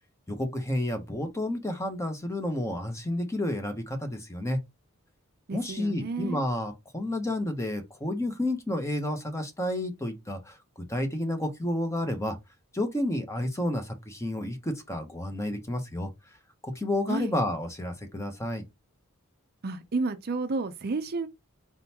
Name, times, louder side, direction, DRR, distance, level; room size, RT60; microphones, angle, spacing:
voice 1, 0.3-4.6 5.5-10.6 10.9-12.4 12.7-16.1 16.6-18.6, left 1 dB, 15° left, 0.9 m, -30 dB
voice 2, 5.5-6.4 17.1-17.3 19.6-21.3, right 3 dB, 45° right, 0.5 m, -31 dB
4.3 x 3.8 x 2.8 m
head